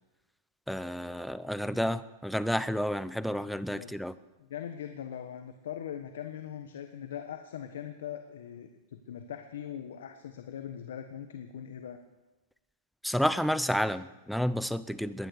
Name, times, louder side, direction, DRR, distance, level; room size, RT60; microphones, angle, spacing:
voice 1, 0.7-4.1 13.0-15.3, equal, ahead, 14 dB, 0.5 m, -30 dB
voice 2, 4.4-12.0, left 9 dB, 80° left, 6 dB, 1.3 m, -41 dB
19.0 x 11.0 x 6.6 m, 1.1 s
supercardioid pair, 145°, 0 cm